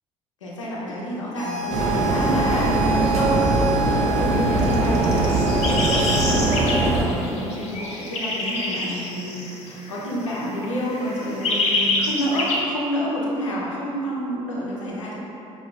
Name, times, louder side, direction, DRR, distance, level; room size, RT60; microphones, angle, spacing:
voice 1, 0.4-2.7 3.0-3.4 3.8-15.2, equal, 90° left, -5 dB, 0.6 m, -29 dB
sound 1, 1.4-6.6, right 5 dB, 90° right, 0.6 m, -28 dB
sound 2, 1.7-7.0, right 1 dB, 45° right, 0.6 m, -21 dB
sound 3, 4.2-10.4 10.6-12.6, left 2 dB, 45° left, 0.7 m, -27 dB
4.7 x 2.3 x 3.3 m, 3.0 s
hypercardioid pair, 55°, 16 cm